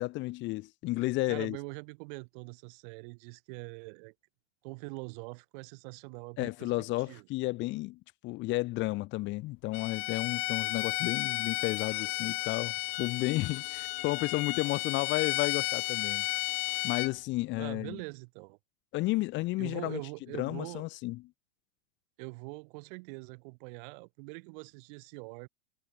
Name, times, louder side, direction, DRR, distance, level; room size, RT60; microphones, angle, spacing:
voice 1, 0.0-1.6 6.4-16.2 16.8-18.0 18.9-20.0 20.4-21.2, left 20 dB, 35° left, 1.5 m, -32 dB
voice 2, 1.3-4.1 4.6-6.7 7.1-7.3 17.6-18.6 19.6-20.8 22.2-25.5, right 32 dB, 50° right, 5.1 m, -43 dB
Bowed string instrument, 9.7-17.1, left 24 dB, 55° left, 4.1 m, -33 dB
supercardioid pair, 145°, 33 cm